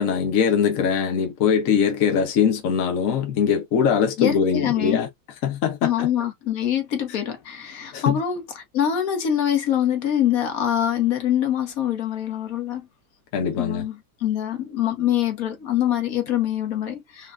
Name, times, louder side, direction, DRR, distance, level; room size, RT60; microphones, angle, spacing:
voice 1, 0.0-5.1 5.4-6.1 7.9-8.2 13.3-13.8, left 7 dB, 70° left, 0.8 m, -22 dB
voice 2, 4.2-5.0 5.8-12.9 13.6-17.3, left 10 dB, 50° left, 1.2 m, -24 dB
5.4 x 2.3 x 2.4 m
omnidirectional pair, 2.4 m